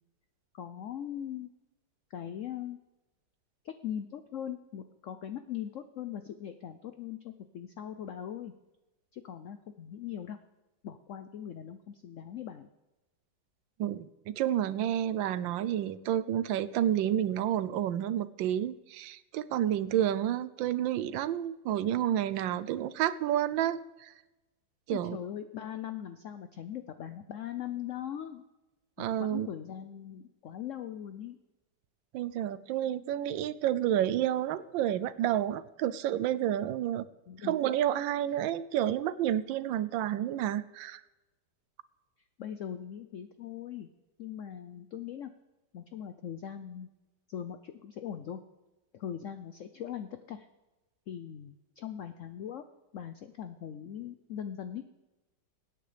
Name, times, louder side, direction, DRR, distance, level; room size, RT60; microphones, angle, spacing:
voice 1, 0.5-1.5 2.1-2.8 3.6-8.5 9.1-10.4 10.8-12.7 24.9-28.4 29.0-31.4 37.3-37.5 42.4-43.9 44.2-45.3 45.7-46.9 47.3-48.4 48.9-50.5 51.1-52.6 52.9-54.8, left 9 dB, 85° left, 9 dB, 0.6 m, -40 dB
voice 2, 13.8-24.1 24.9-25.2 29.0-29.5 32.1-37.1 37.4-41.0, right 11 dB, 90° right, 16 dB, 1.4 m, -30 dB
24.0 x 9.2 x 3.4 m, 1.1 s
omnidirectional pair, 2.0 m